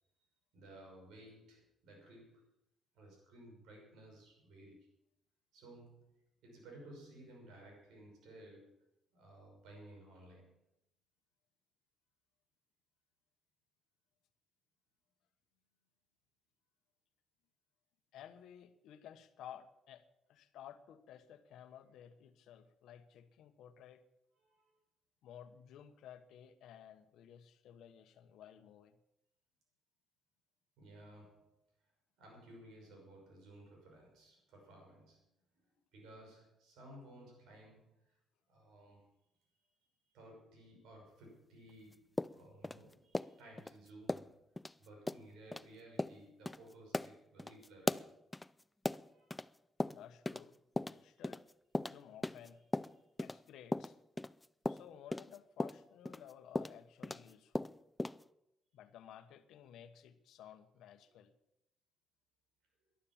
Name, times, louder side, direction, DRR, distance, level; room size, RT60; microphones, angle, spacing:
voice 1, 0.5-2.5 2.9-4.9 5.5-8.8 9.1-10.6 24.4-24.8 30.8-31.6 32.2-35.2 35.7-38.2 38.5-39.1 40.1-44.4 44.8-48.1 49.0-49.4 51.1-51.2, right 1 dB, 90° right, 0 dB, 5.9 m, -57 dB
voice 2, 18.1-24.0 25.2-29.0 49.9-50.6 50.9-51.4 51.8-52.6 53.2-54.0 54.7-57.7 58.7-61.3, left 9 dB, 85° left, 10 dB, 1.2 m, -55 dB
sound 1, 42.2-43.7 44.1-44.3 44.6-44.7 45.1-45.2 45.5-45.6 46.0-46.2 46.5-46.6 46.9-49.5 49.8-50.5 50.8-53.4 53.7-57.3 57.5-58.2, left 2 dB, 10° left, 0.4 m, -38 dB
12.0 x 11.5 x 7.4 m, 0.82 s
cardioid pair, 90°, 0 cm